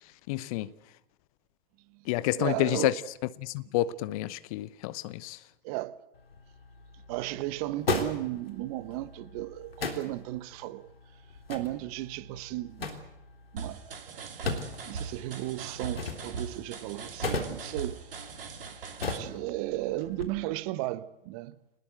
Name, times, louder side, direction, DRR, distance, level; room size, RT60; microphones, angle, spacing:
voice 1, 0.3-0.7 2.1-2.9 3.4-5.4, left 16 dB, 35° left, 0.8 m, -29 dB
voice 2, 2.4-3.0 5.6-6.0 7.1-10.9 11.5-12.9 13.5-14.3 14.9-18.0 19.1-21.5, right 17 dB, 35° right, 1.2 m, -35 dB
sound 1, 6.1-20.2, left 4 dB, 70° left, 3.6 m, -38 dB
sound 2, 13.6-19.2, right 5 dB, 65° right, 3.0 m, -40 dB
27.5 x 20.0 x 8.1 m
figure-of-eight pair, 100°, 30 cm